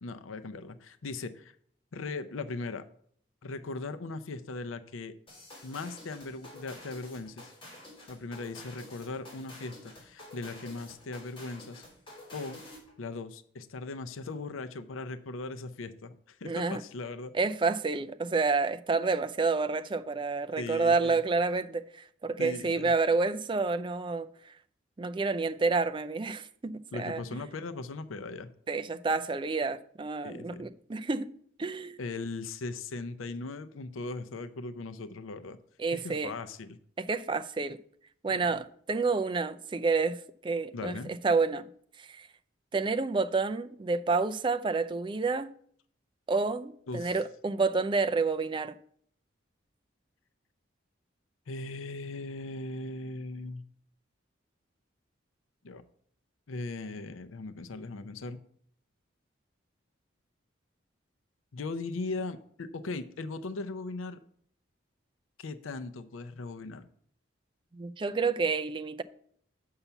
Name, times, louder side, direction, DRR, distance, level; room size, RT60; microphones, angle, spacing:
voice 1, 0.0-1.6 1.9-2.8 3.4-5.1 5.6-7.5 8.1-11.8 12.3-12.6 13.0-17.3 20.6-21.2 22.4-22.9 26.9-28.5 30.2-30.7 32.0-35.6 35.9-36.8 38.3-38.6 40.7-41.1 46.9-47.2 51.5-53.6 55.6-55.8 56.5-58.4 61.5-64.2 65.4-66.9, left 3 dB, 85° left, 0.6 m, -39 dB
sound 1, 5.3-12.9, left 1 dB, 25° left, 3.5 m, -49 dB
voice 2, 16.4-16.8 17.3-24.5 25.0-27.4 28.7-31.3 31.6-32.0 35.8-36.3 37.0-37.8 38.2-40.9 41.2-41.7 42.0-42.3 42.7-45.5 46.3-48.8 67.7-69.0, right 4 dB, 25° right, 0.3 m, -29 dB
7.0 x 5.7 x 6.8 m
head